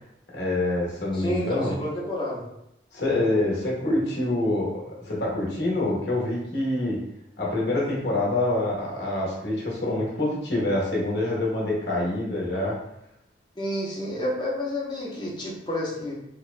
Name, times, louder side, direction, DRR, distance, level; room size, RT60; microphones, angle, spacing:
voice 1, 0.3-1.7 2.9-7.0 7.4-12.8, left 1 dB, 65° left, -4 dB, 0.8 m, -26 dB
voice 2, 1.1-2.4 13.6-16.1, left 1 dB, 25° left, -4 dB, 0.6 m, -30 dB
2.8 x 2.1 x 2.4 m, 0.81 s
head